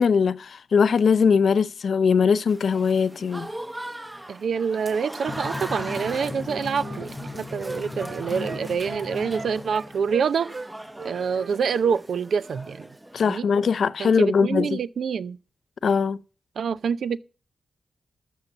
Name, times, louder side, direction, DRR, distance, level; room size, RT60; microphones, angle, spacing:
voice 1, 0.0-3.5 8.4-8.5 13.1-14.8 15.8-16.2, left 6 dB, 75° left, 0.6 m, -21 dB
Applause / Crowd, 2.5-13.4, right 1 dB, 15° right, 0.8 m, -39 dB
voice 2, 4.3-10.5 11.0-12.9 13.2-13.5 14.0-15.4 16.6-17.2, right 6 dB, 85° right, 0.5 m, -26 dB
Drum, 5.3-10.3, left 3 dB, 35° left, 0.8 m, -37 dB
Wind instrument woodwind instrument, 6.0-10.7 11.0-12.0 12.3-12.5, right 3 dB, 60° right, 1.0 m, -39 dB
13.5 x 5.6 x 7.1 m
cardioid pair, 65°, 0 cm